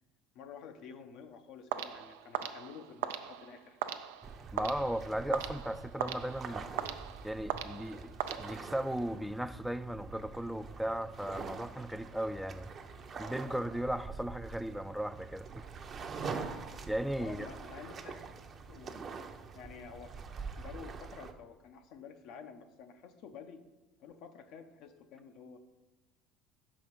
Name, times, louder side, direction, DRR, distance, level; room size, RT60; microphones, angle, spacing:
voice 1, 0.3-3.8 17.2-18.3 18.7-19.1 19.5-20.1 20.5-23.6 24.0-25.6, left 6 dB, 65° left, 0.7 m, -50 dB
sound 1, 1.7-9.0, right 10 dB, 85° right, 0.4 m, -40 dB
sound 2, 4.2-21.3, right 5 dB, 40° right, 0.7 m, -45 dB
voice 2, 4.5-6.7 7.2-8.1 8.4-12.7 13.2-15.6 16.2-16.6 16.9-17.5, right 1 dB, ahead, 0.4 m, -36 dB
5.8 x 5.0 x 5.5 m
supercardioid pair, 90°, 0 cm